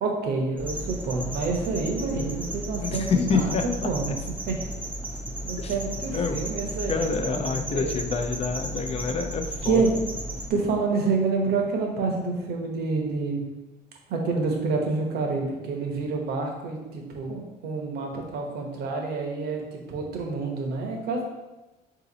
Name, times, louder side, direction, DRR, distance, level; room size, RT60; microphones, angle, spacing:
voice 1, 0.0-4.2 4.5-4.7 5.4-8.0 9.6-9.9 10.5-13.4 14.1-21.2, right 4 dB, 70° right, 2 dB, 0.9 m, -28 dB
sound 1, 0.6-10.5, right 1 dB, 10° right, 0.6 m, -34 dB
voice 2, 2.8-3.6 4.1-4.2 5.6-5.7 6.1-6.4 6.9-9.8 18.1-18.2, left 5 dB, 35° left, 6 dB, 0.5 m, -27 dB
3.8 x 2.9 x 3.8 m, 1.1 s
cardioid pair, 110°, 17 cm